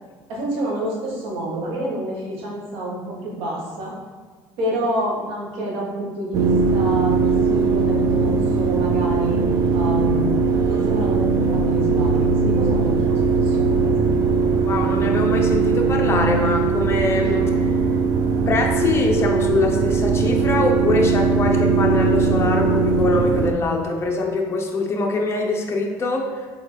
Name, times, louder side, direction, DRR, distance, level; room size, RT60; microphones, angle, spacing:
voice 1, 0.3-3.9 4.6-9.4 9.7-14.4, right 1 dB, 80° right, -3 dB, 1.4 m, -28 dB
sound 1, 6.3-23.5, right 4 dB, 40° right, 0.4 m, -19 dB
voice 2, 14.7-17.7 18.5-26.5, left 3 dB, 25° left, 1 dB, 0.6 m, -23 dB
4.2 x 3.7 x 3.2 m, 1.4 s
cardioid pair, 125°, 9 cm